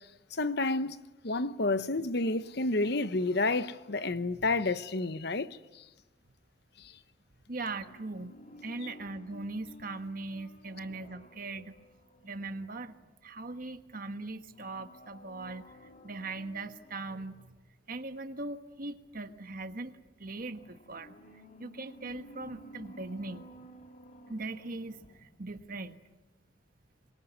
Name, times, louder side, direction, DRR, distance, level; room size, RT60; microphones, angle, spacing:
voice 1, 0.3-1.0 1.2-5.9 6.8-7.0 8.8-8.9, left 2 dB, 60° left, 1.0 m, -30 dB
voice 2, 4.1-4.5 7.5-11.7 12.2-13.0 13.2-15.7 16.0-17.5 17.9-21.2 21.6-23.4 24.3-26.0, right 2 dB, 50° right, 1.4 m, -40 dB
sound 1, 7.7-13.4 14.5-17.5 20.3-25.5 25.8-25.9, equal, 45° left, 2.2 m, -54 dB
26.0 x 22.5 x 9.6 m
head